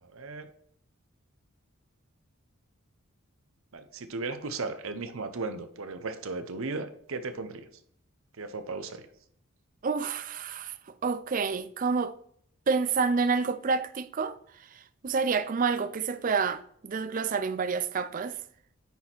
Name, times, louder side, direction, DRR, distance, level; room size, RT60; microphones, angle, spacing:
voice 1, 0.0-0.5 3.7-7.7 8.4-9.1, right 3 dB, 70° right, 0.8 m, -36 dB
voice 2, 9.8-10.7 11.0-12.2 12.7-14.4 14.7-18.4, right 5 dB, 40° right, 0.4 m, -28 dB
9.4 x 4.3 x 4.5 m
head